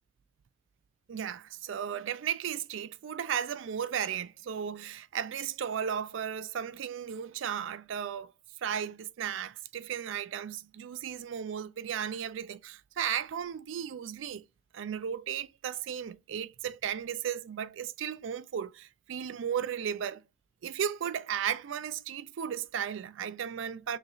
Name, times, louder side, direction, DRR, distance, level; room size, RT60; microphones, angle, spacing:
voice 1, 1.1-8.3 8.6-14.5 14.7-20.2 20.6-24.0, right 8 dB, 75° right, 0.3 m, -35 dB
4.8 x 3.0 x 2.4 m
head